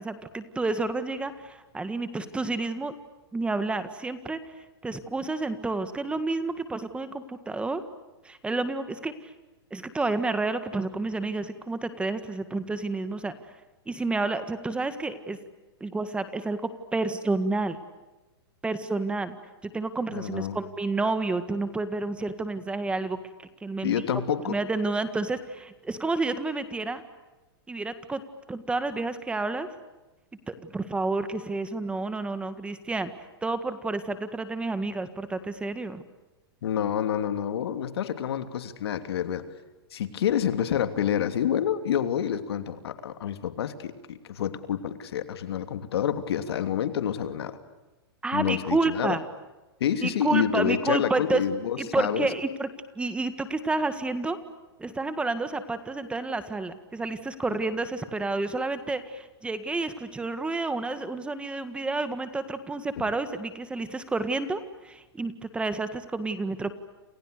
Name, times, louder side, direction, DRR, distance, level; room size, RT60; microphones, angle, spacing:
voice 1, 0.0-2.9 3.3-4.4 4.8-7.8 8.3-9.1 9.7-13.3 13.9-15.4 15.8-16.6 16.9-17.8 18.6-19.4 19.6-23.2 23.6-23.9 24.5-27.0 27.7-28.2 28.5-29.7 30.5-33.1 33.4-36.0 48.2-49.2 50.0-51.4 51.8-52.7 53.0-54.4 54.8-66.7, right 3 dB, 10° right, 11 dB, 1.8 m, -30 dB
voice 2, 20.1-20.6 23.8-24.6 36.6-39.4 39.9-47.6 48.3-49.2 49.8-52.3, left 9 dB, 75° left, 9 dB, 3.0 m, -28 dB
30.0 x 29.0 x 6.8 m, 1.1 s
hypercardioid pair, 140°, 13 cm